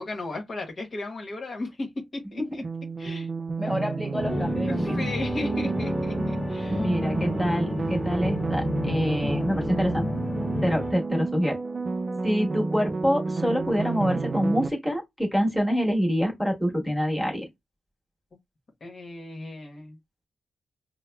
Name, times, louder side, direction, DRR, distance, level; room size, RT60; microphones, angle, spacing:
voice 1, 0.0-2.6 3.0-3.3 4.6-6.9 18.8-20.0, left 2 dB, 50° left, 1.0 m, -35 dB
sound 1, 2.6-14.7, right 4 dB, 40° right, 0.4 m, -30 dB
voice 2, 3.6-5.0 6.7-10.1 10.6-11.6 12.2-17.5, equal, ahead, 1.3 m, -26 dB
sound 2, 4.2-10.9, left 2 dB, 20° left, 0.5 m, -31 dB
5.5 x 2.0 x 2.2 m
cardioid pair, 95°, 0 cm